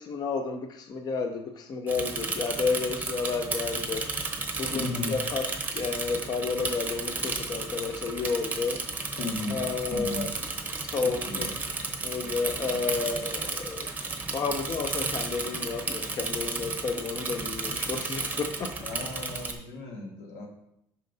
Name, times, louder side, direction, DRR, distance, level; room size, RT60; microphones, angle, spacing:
voice 1, 0.0-4.1 4.6-5.4 5.7-8.8 9.5-10.3 10.8-11.5 12.0-13.9 14.3-18.7 19.1-19.3, left 4 dB, 35° left, 6 dB, 0.6 m, -31 dB
Bicycle / Mechanisms, 1.9-19.5, right 3 dB, 15° right, 0.8 m, -33 dB
voice 2, 4.7-5.2 9.2-9.6 9.9-10.3 11.0-11.5 18.8-20.5, left 2 dB, 90° left, 1 dB, 1.6 m, -35 dB
8.4 x 5.5 x 2.7 m, 0.77 s
cardioid pair, 130°, 11 cm